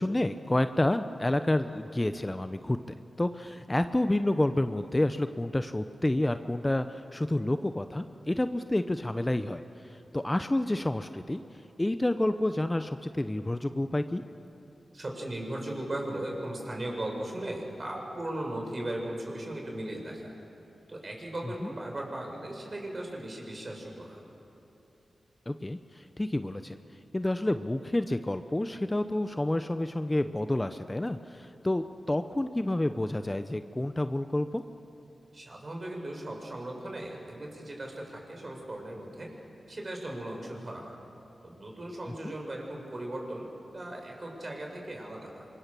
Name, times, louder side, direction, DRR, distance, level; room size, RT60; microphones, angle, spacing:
voice 1, 0.0-2.8 3.2-9.6 9.9-11.4 11.8-14.2 21.6-21.7 25.5-26.8 27.1-34.6 42.2-42.3, left 1 dB, 20° left, 10 dB, 0.7 m, -29 dB
voice 2, 14.9-20.3 20.9-24.2 35.3-39.3 39.7-41.0 41.4-45.5, right 1 dB, 45° right, 1 dB, 5.6 m, -37 dB
25.0 x 22.5 x 6.9 m, 2.9 s
cardioid pair, 55°, 0 cm